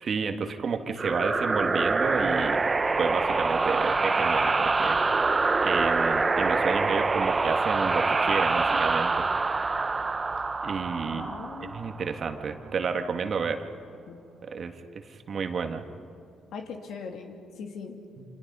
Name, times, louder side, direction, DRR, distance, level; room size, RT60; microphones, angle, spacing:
voice 1, 0.0-2.6 3.0-5.0 5.2-5.3 5.6-9.3 10.6-11.3 11.7-13.6 14.4-15.9 18.2-18.3, right 5 dB, 50° right, 7 dB, 1.7 m, -30 dB
sound 1, 1.0-12.3, right 3 dB, 25° right, 0.9 m, -25 dB
voice 2, 11.0-11.7 14.1-14.2 16.5-18.0, left 5 dB, 75° left, 3 dB, 2.9 m, -40 dB
28.5 x 27.5 x 5.6 m, 2.5 s
cardioid pair, 90°, 0 cm